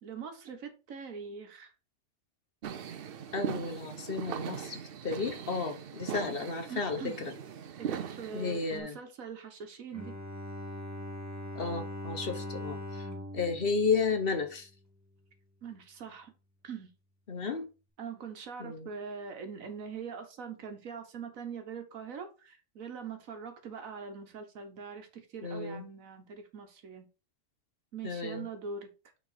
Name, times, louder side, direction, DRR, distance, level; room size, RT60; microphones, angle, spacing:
voice 1, 0.0-1.7 6.1-6.3 6.7-7.2 7.8-10.1 15.6-16.3 16.6-16.9 18.0-27.1 27.9-28.9, right 5 dB, 85° right, 1.5 m, -43 dB
sound 1, 2.6-8.8, right 8 dB, 55° right, 0.7 m, -40 dB
voice 2, 3.3-7.3 8.3-9.0 11.5-13.1 13.3-14.7 17.3-17.7 18.6-18.9 25.4-25.9 28.0-28.5, left 4 dB, 45° left, 1.1 m, -33 dB
Bowed string instrument, 9.9-14.9, left 1 dB, 15° right, 0.8 m, -41 dB
5.9 x 3.8 x 4.7 m
omnidirectional pair, 1.4 m